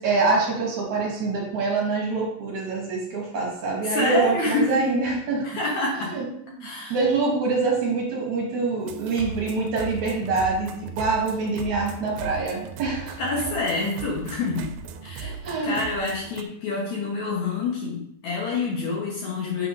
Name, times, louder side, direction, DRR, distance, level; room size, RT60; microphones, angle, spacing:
voice 1, 0.0-5.4 6.1-6.3 6.5-13.2 15.2-15.8, right 3 dB, 60° right, -3 dB, 2.6 m, -25 dB
voice 2, 3.8-4.8 5.4-6.2 6.6-7.0 13.2-14.7 15.0-15.3 15.6-19.7, left 3 dB, 65° left, -3 dB, 2.0 m, -27 dB
sound 1, 8.8-16.4, right 6 dB, 85° right, 2.3 m, -38 dB
8.0 x 3.8 x 5.1 m, 0.72 s
omnidirectional pair, 4.2 m